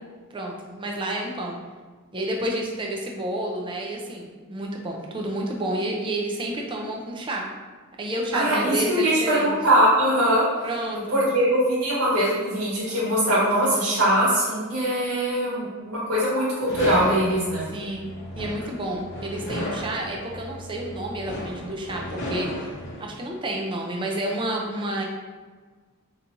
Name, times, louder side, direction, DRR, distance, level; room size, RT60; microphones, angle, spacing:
voice 1, 0.3-1.6 2.1-7.4 8.0-9.6 10.6-11.2 17.7-18.1 18.4-22.7 23.0-25.0, right 1 dB, 20° right, 0 dB, 0.5 m, -30 dB
voice 2, 8.3-10.4 10.9-17.6, right 1 dB, 85° right, -9 dB, 1.3 m, -22 dB
sound 1, 16.7-23.0, equal, 50° left, 0.8 m, -34 dB
4.8 x 2.9 x 2.6 m, 1.4 s
head